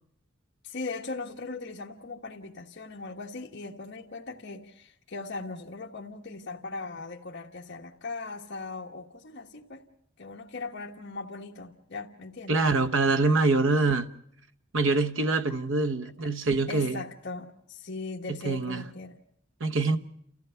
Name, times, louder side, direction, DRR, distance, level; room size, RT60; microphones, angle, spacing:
voice 1, 0.6-9.8 10.2-12.6 16.7-19.2 19.9-20.0, left 3 dB, 60° left, 1.4 m, -39 dB
voice 2, 12.5-14.1 14.7-17.0 18.3-18.8 19.6-20.0, right 3 dB, 70° right, 1.0 m, -25 dB
29.0 x 16.0 x 5.7 m
head